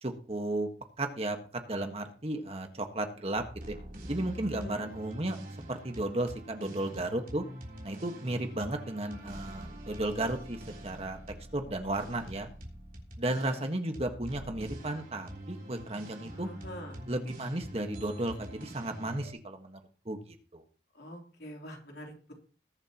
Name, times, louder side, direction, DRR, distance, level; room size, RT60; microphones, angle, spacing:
voice 1, 0.0-0.7 1.0-3.7 4.1-5.4 5.7-7.4 7.8-11.2 11.5-12.5 13.2-16.5 17.1-19.8 20.0-20.6, right 1 dB, 35° right, 5 dB, 1.5 m, -34 dB
sound 1, 3.3-19.3, right 1 dB, 50° right, 3.4 m, -45 dB
voice 2, 4.2-4.8 16.3-17.0 20.9-22.3, equal, 70° left, 1 dB, 3.3 m, -45 dB
20.5 x 7.6 x 3.0 m, 0.39 s
head